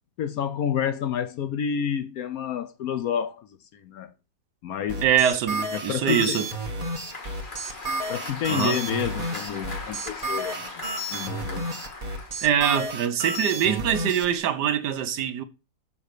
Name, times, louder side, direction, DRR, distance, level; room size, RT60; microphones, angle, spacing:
voice 1, 0.2-4.1 4.6-5.1 5.7-6.4 8.1-10.7 11.1-11.7, left 8 dB, 70° left, 0.9 m, -29 dB
sound 1, 4.9-14.2, right 1 dB, 25° right, 1.3 m, -31 dB
voice 2, 5.0-6.5 8.5-8.8 12.4-15.4, right 9 dB, 75° right, 1.4 m, -23 dB
Applause, 6.0-13.1, left 3 dB, 30° left, 1.8 m, -40 dB
7.0 x 3.9 x 6.5 m
omnidirectional pair, 1.9 m